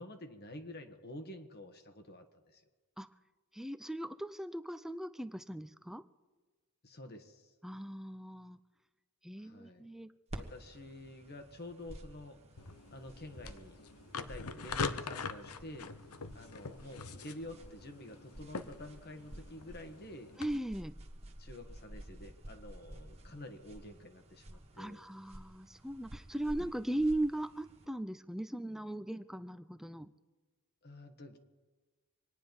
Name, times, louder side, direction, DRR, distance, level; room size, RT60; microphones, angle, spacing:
voice 1, 0.0-2.6 6.8-7.5 9.4-9.9 10.3-12.4 12.9-13.8 14.1-15.9 16.3-20.3 21.4-25.0 30.8-31.4, left 1 dB, 45° left, 6 dB, 1.6 m, -49 dB
voice 2, 3.5-6.0 7.6-8.6 9.2-10.1 20.4-20.9 24.8-30.1, right 1 dB, ahead, 11 dB, 0.5 m, -38 dB
sound 1, 10.3-27.9, right 1 dB, 30° right, 1.4 m, -52 dB
sound 2, 12.6-20.5, left 4 dB, 90° left, 0.9 m, -43 dB
25.5 x 10.0 x 5.4 m, 1.3 s
head